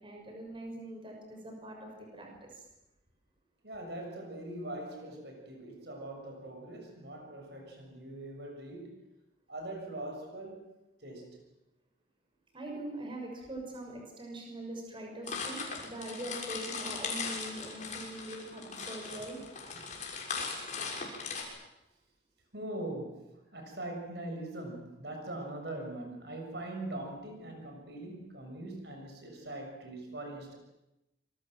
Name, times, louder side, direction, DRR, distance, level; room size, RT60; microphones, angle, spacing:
voice 1, 0.0-2.6 12.5-19.4, right 1 dB, 30° right, 1 dB, 6.3 m, -42 dB
voice 2, 3.6-9.0 9.5-10.7 11.0-11.4 22.5-30.6, right 1 dB, 65° right, 4 dB, 6.6 m, -42 dB
sound 1, 15.3-21.4, left 5 dB, 40° left, 6.6 m, -39 dB
27.0 x 23.5 x 7.7 m, 0.93 s
head